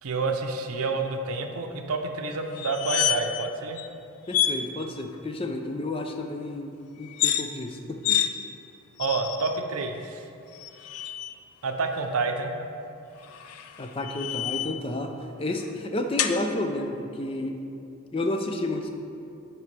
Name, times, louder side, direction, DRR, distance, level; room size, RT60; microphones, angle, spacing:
voice 1, 0.0-3.8 9.0-10.3 11.6-12.5, right 3 dB, 80° right, 5 dB, 0.6 m, -28 dB
sound 1, 2.6-3.5 3.8-3.9 4.3-4.6 7.0-7.4 8.0-8.3 9.0-9.6 10.5-11.3 13.2-14.8 16.2-16.4, left 10 dB, 90° left, 0.4 m, -28 dB
voice 2, 4.3-8.2 13.8-15.1 15.4-17.6 18.1-18.9, left 2 dB, 25° left, 4 dB, 0.4 m, -31 dB
11.0 x 4.6 x 3.3 m, 2.7 s
head